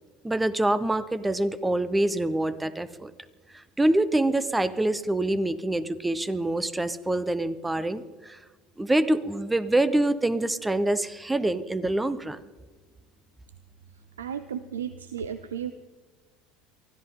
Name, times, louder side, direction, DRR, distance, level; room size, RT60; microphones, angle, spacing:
voice 1, 0.2-3.1 3.5-8.4 8.8-12.4, right 1 dB, 10° right, 14 dB, 0.9 m, -25 dB
voice 2, 14.2-15.7, right 8 dB, 85° right, 12 dB, 0.6 m, -34 dB
24.0 x 14.0 x 3.8 m, 1.3 s
hypercardioid pair, 75°, 0 cm